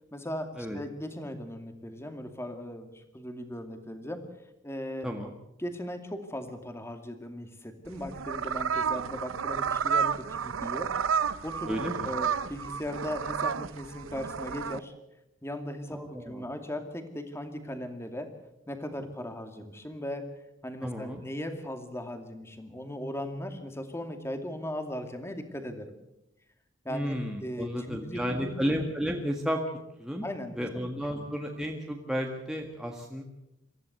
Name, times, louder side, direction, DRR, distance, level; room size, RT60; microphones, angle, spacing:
voice 1, 0.1-4.2 4.6-5.1 5.6-10.9 11.4-11.8 12.0-14.9 15.4-18.3 18.7-20.3 20.6-25.9 26.8-28.7 30.2-30.7 31.1-31.3, left 1 dB, 15° left, 7 dB, 2.3 m, -38 dB
sound 1, 7.9-14.8, right 7 dB, 90° right, 0.7 m, -31 dB
voice 2, 11.7-12.1 15.9-16.4 20.8-21.2 26.9-29.6 30.0-30.3 30.6-33.2, equal, 5° right, 1 dB, 1.7 m, -32 dB
24.0 x 15.0 x 8.1 m, 0.87 s
head